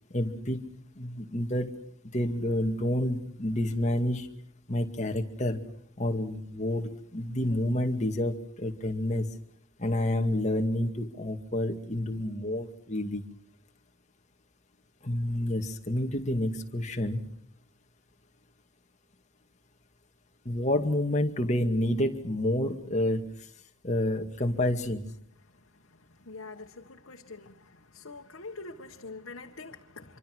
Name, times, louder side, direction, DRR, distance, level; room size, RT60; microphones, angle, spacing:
voice 1, 0.1-0.7 1.0-1.7 2.1-4.3 4.7-5.6 6.0-9.3 9.8-13.2 15.0-17.2 20.4-23.5 23.8-25.1, left 1 dB, 35° left, 4 dB, 2.2 m, -29 dB
voice 2, 26.3-27.5 27.9-30.0, left 3 dB, 75° left, 0 dB, 1.6 m, -44 dB
26.0 x 24.5 x 6.4 m, 0.67 s
head